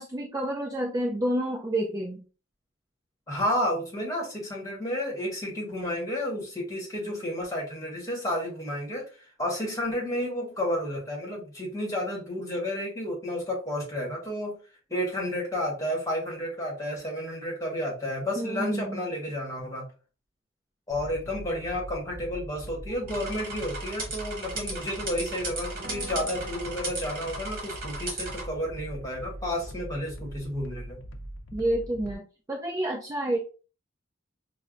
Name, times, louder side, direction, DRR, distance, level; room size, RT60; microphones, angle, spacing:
voice 1, 0.0-2.2 18.4-19.1 31.5-33.4, right 1 dB, 15° right, 0 dB, 0.3 m, -29 dB
voice 2, 3.3-14.6 14.9-19.9 20.9-31.0, left 1 dB, 15° left, -2 dB, 1.1 m, -31 dB
sound 1, 20.9-32.1, right 1 dB, 65° left, 0.5 m, -42 dB
sound 2, 23.1-28.4, right 3 dB, 45° right, 1.3 m, -36 dB
sound 3, 25.8-30.5, equal, 70° right, 0.9 m, -47 dB
5.4 x 2.0 x 2.4 m, 0.35 s
head